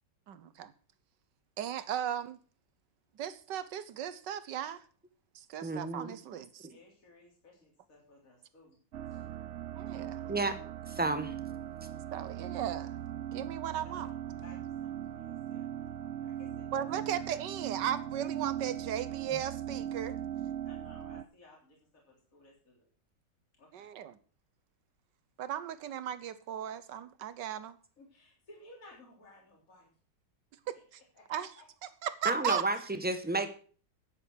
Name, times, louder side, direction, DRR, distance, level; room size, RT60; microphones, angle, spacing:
voice 1, 0.3-0.7 1.6-2.4 3.2-4.8 5.3-6.7 9.8-10.2 12.1-12.9 13.3-14.1 16.7-20.2 23.7-24.2 25.4-27.8 30.7-31.0 31.3-31.5 32.0-32.6, right 10 dB, 80° right, 1.6 m, -36 dB
voice 2, 5.6-6.2 6.6-6.7 10.3-10.5 10.9-11.3 32.2-33.5, right 2 dB, 5° right, 0.9 m, -31 dB
voice 3, 6.7-8.8 9.1-9.2 13.8-14.1 14.4-17.0 20.6-22.9 23.6-23.9 28.0-29.9 31.1-31.6, left 2 dB, 50° left, 3.7 m, -58 dB
sound 1, 8.9-21.2, right 10 dB, 65° right, 0.7 m, -39 dB
9.8 x 9.8 x 6.3 m
omnidirectional pair, 1.9 m